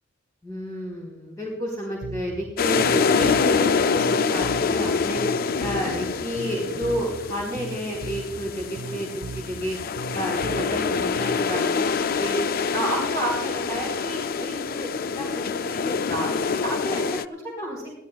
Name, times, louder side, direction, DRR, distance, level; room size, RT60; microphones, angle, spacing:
voice 1, 0.4-5.2 5.6-9.8 10.1-12.4 12.7-14.9 15.1-17.0 17.3-17.8, equal, 15° left, -5 dB, 3.8 m, -31 dB
Bass guitar, 2.0-11.6, right 3 dB, 70° right, 0.5 m, -38 dB
sound 1, 2.6-17.2, left 5 dB, 45° left, 0.4 m, -26 dB
23.5 x 15.0 x 2.3 m, 0.94 s
head